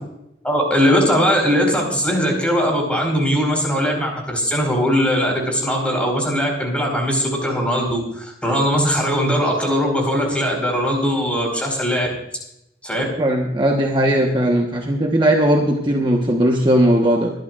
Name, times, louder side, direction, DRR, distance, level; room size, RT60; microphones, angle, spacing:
voice 1, 0.4-12.1 12.8-13.0, equal, 5° left, 1 dB, 4.8 m, -20 dB
voice 2, 13.2-17.3, right 1 dB, 25° right, 1 dB, 1.3 m, -18 dB
23.5 x 12.0 x 2.6 m, 0.82 s
head